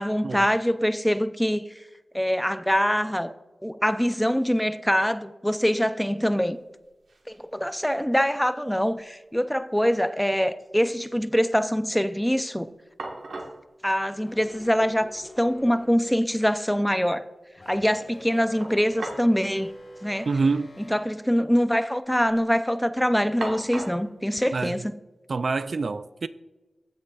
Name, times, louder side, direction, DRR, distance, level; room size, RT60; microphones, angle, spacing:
voice 1, 0.0-1.6 2.1-3.3 3.6-6.6 7.3-12.7 13.8-17.2 17.7-19.7 20.0-20.3 20.8-25.0, equal, 5° left, 0.5 m, -24 dB
sound 1, 6.5-6.6 6.8-7.5 7.8-8.7 9.0-9.1 12.5-12.6 13.0-13.6 14.8-14.9 15.2-15.3 18.6-19.4 19.6-19.8 20.7-20.9 21.2-21.7 22.1-22.5 23.4-24.1, right 2 dB, 85° right, 1.3 m, -38 dB
sound 2, 14.1-16.3 17.5-21.0, left 1 dB, 65° left, 2.6 m, -47 dB
voice 2, 20.3-20.7 24.5-24.8 25.3-26.3, right 4 dB, 65° right, 0.3 m, -26 dB
15.5 x 6.5 x 2.4 m
wide cardioid pair, 70°, 0 cm